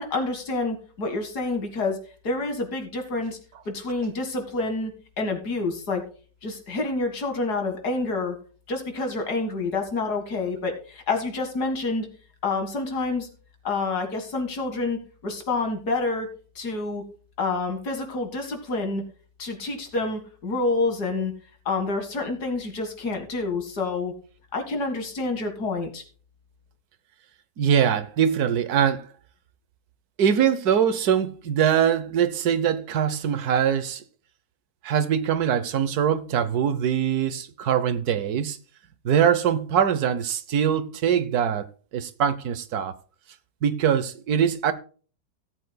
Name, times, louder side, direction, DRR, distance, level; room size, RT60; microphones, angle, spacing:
voice 1, 0.0-2.0 2.2-3.4 3.7-6.0 6.4-8.4 8.7-12.1 12.4-13.3 13.6-16.3 16.6-17.0 17.4-19.0 19.4-21.3 21.7-24.1 24.5-26.0, left 3 dB, 65° left, 2.4 m, -28 dB
voice 2, 27.6-29.0 30.2-34.0 34.8-38.6 39.0-41.7 41.9-42.9 43.6-44.7, right 8 dB, 65° right, 1.3 m, -22 dB
17.5 x 8.2 x 2.3 m
omnidirectional pair, 1.9 m